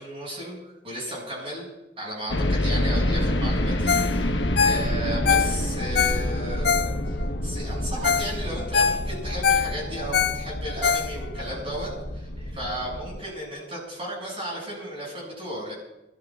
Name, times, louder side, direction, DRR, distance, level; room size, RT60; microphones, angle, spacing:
voice 1, 0.0-1.7 2.0-4.3 4.6-7.2 7.4-15.7, right 1 dB, 35° right, -4 dB, 6.5 m, -34 dB
sound 1, 2.3-13.2, left 1 dB, 80° left, 1.1 m, -28 dB
Ringtone, 3.9-4.2 4.4-7.3 7.7-7.8 8.0-8.3 8.6-11.5 11.9-12.0, left 6 dB, 60° left, 0.6 m, -24 dB
29.5 x 14.0 x 2.4 m, 0.93 s
head